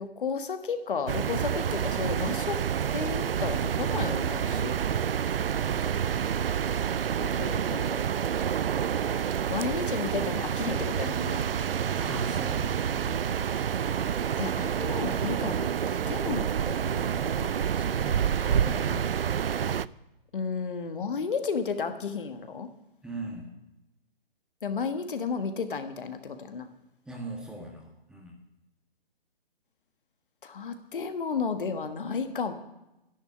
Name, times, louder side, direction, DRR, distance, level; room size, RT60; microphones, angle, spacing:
voice 1, 0.0-2.6 2.9-4.8 7.2-8.2 9.5-11.5 14.4-17.8 20.3-22.7 24.6-26.7 30.4-32.5, left 5 dB, 60° left, 8 dB, 1.4 m, -33 dB
sound 1, 1.1-19.9, right 8 dB, 70° right, 0.5 m, -28 dB
voice 2, 12.0-13.2 18.0-19.2 23.0-23.5 27.0-28.4, right 1 dB, 5° right, 1 dB, 1.6 m, -39 dB
11.5 x 11.0 x 6.8 m, 0.92 s
figure-of-eight pair, 135°, 30 cm